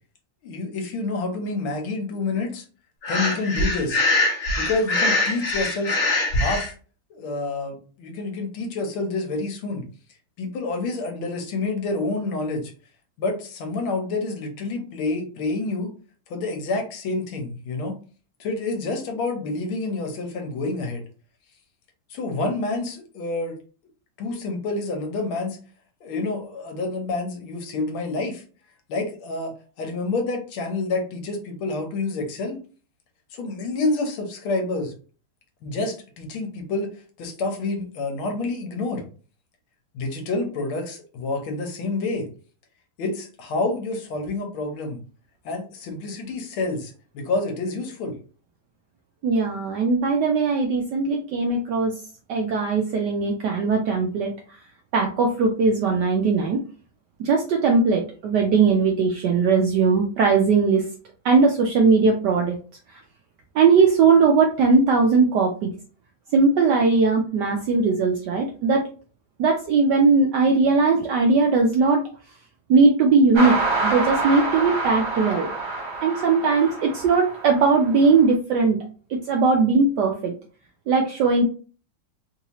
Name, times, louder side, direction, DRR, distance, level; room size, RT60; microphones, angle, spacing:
voice 1, 0.4-2.6 3.1-4.0 4.6-6.0 6.3-6.7 7.1-9.9 10.4-12.7 13.2-15.9 16.3-18.0 18.4-21.0 22.1-23.5 24.2-25.6 26.0-28.4 28.9-32.6 33.3-34.9 35.6-36.9 37.2-39.0 39.9-42.3 43.0-45.0 45.4-48.2, left 3 dB, 75° left, 3 dB, 1.7 m, -28 dB
Breathing, 3.0-6.7, left 2 dB, 45° left, 1.0 m, -23 dB
voice 2, 49.2-51.9 52.3-54.3 54.9-56.6 57.2-60.9 61.2-62.6 62.9-63.0 63.5-65.7 66.3-68.9 69.4-72.0 72.7-73.6 73.8-75.5 76.0-78.8 79.1-80.3 80.9-81.4, right 4 dB, 75° right, 2 dB, 0.9 m, -19 dB
sound 1, 73.3-78.2, right 2 dB, 55° right, 1.6 m, -27 dB
3.7 x 2.7 x 2.9 m, 0.38 s
omnidirectional pair, 2.3 m